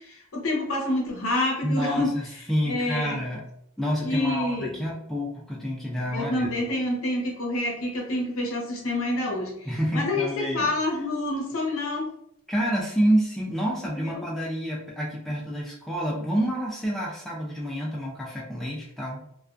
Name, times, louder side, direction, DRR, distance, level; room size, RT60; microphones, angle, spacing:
voice 1, 0.0-2.1 2.7-3.2 4.0-4.8 6.1-9.7 9.9-12.1 14.0-14.2, left 1 dB, 80° left, -1 dB, 0.8 m, -28 dB
voice 2, 1.6-2.2 2.5-3.5 3.8-6.5 9.7-10.7 12.5-19.2, equal, ahead, -5 dB, 0.5 m, -28 dB
2.3 x 2.3 x 2.5 m, 0.74 s
head